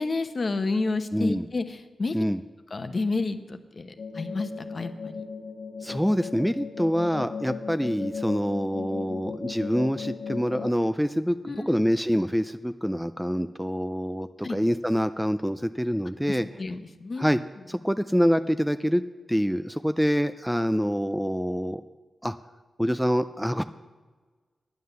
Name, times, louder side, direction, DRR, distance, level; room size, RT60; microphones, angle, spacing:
voice 1, 0.0-2.2 2.7-5.2 11.4-12.0 14.4-14.6 16.3-17.3, left 3 dB, 45° left, 8 dB, 0.9 m, -30 dB
voice 2, 1.1-1.5 2.1-2.4 5.8-16.5 17.2-17.4 17.7-19.0 19.3-21.8 22.2-22.4 22.8-23.6, equal, ahead, 11 dB, 0.3 m, -26 dB
sound 1, 4.0-10.7, left 5 dB, 70° left, 0.6 m, -37 dB
9.4 x 9.4 x 6.7 m, 1.4 s
cardioid pair, 75°, 0 cm